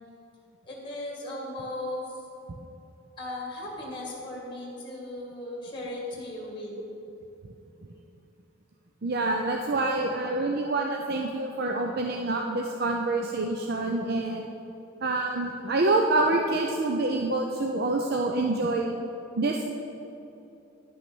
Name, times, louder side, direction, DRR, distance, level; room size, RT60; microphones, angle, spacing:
voice 1, 0.7-2.1 3.2-6.8, left 1 dB, 25° left, -2 dB, 1.9 m, -37 dB
voice 2, 9.0-14.5 15.0-18.9 19.4-19.6, right 2 dB, 50° right, 1 dB, 0.5 m, -26 dB
10.5 x 6.1 x 6.1 m, 2.9 s
head